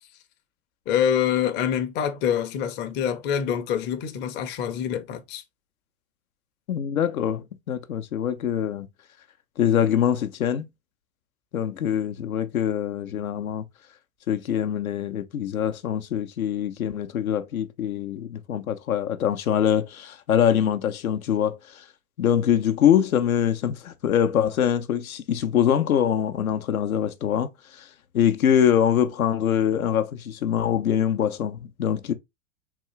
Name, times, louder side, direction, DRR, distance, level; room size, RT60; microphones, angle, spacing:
voice 1, 0.9-5.4, left 9 dB, 25° left, 0.5 m, -25 dB
voice 2, 6.7-8.9 9.6-10.7 11.5-13.6 14.3-21.8 22.2-27.9 28.1-32.1, left 9 dB, 85° left, 0.6 m, -24 dB
3.6 x 2.4 x 2.9 m
hypercardioid pair, 100°, 42 cm